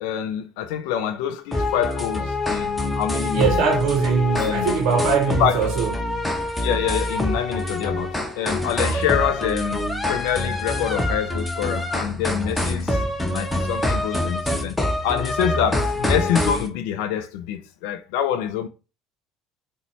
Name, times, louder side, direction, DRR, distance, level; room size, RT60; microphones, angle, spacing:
voice 1, 0.0-3.6 4.3-4.7 5.4-5.7 6.6-13.0 13.3-14.8 15.0-18.7, left 9 dB, 65° left, 0.3 m, -26 dB
sound 1, 1.5-16.7, left 1 dB, 10° left, 0.8 m, -25 dB
voice 2, 3.3-5.9, right 6 dB, 60° right, 0.6 m, -21 dB
3.8 x 2.1 x 3.1 m
figure-of-eight pair, 60°, 0 cm